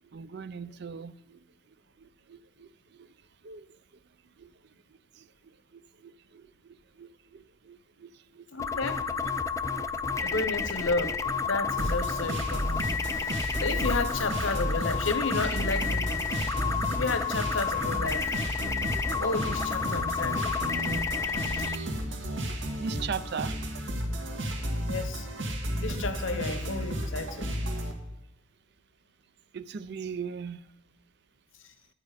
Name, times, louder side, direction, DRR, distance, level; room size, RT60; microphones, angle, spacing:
voice 1, 0.1-1.4 2.0-3.1 3.4-3.7 4.4-4.5 5.1-5.3 5.7-8.8 9.1-9.2 9.8-10.0 10.3-10.5 22.8-23.6 29.5-30.6, right 6 dB, 55° right, 0.5 m, -40 dB
voice 2, 8.5-9.0 10.2-16.3 16.9-18.3 19.2-20.6 24.9-25.3 25.7-27.5, left 3 dB, 75° left, 0.9 m, -32 dB
sound 1, 8.6-21.8, left 5 dB, 15° left, 0.4 m, -31 dB
sound 2, 11.8-27.9, equal, 75° right, 1.7 m, -33 dB
12.0 x 8.3 x 5.0 m
head